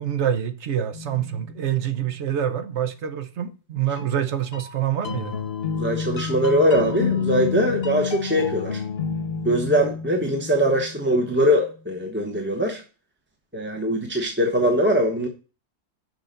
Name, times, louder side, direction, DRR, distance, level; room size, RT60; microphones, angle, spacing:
voice 1, 0.0-5.4, right 10 dB, 65° right, 1.1 m, -26 dB
sound 1, 0.9-2.1 4.0-11.6, left 6 dB, 55° left, 1.0 m, -30 dB
voice 2, 5.8-8.8 9.4-12.8 13.5-15.3, equal, 10° right, 0.9 m, -22 dB
6.6 x 5.1 x 6.5 m
omnidirectional pair, 1.3 m